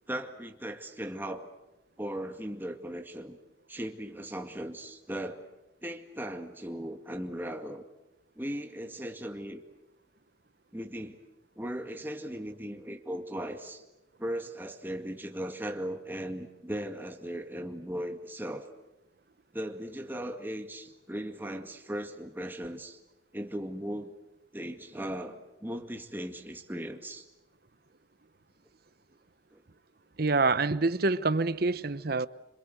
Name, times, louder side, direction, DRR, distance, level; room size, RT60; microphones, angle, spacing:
voice 1, 0.1-1.5 2.0-3.4 3.7-5.4 5.8-7.8 8.4-9.6 10.7-11.2 11.6-13.8 14.2-18.7 19.5-23.0 23.3-24.2 24.5-27.3 29.5-29.6, equal, 10° right, 2.0 m, -37 dB
voice 2, 30.2-32.3, right 3 dB, 55° right, 0.9 m, -26 dB
27.0 x 26.5 x 8.0 m
head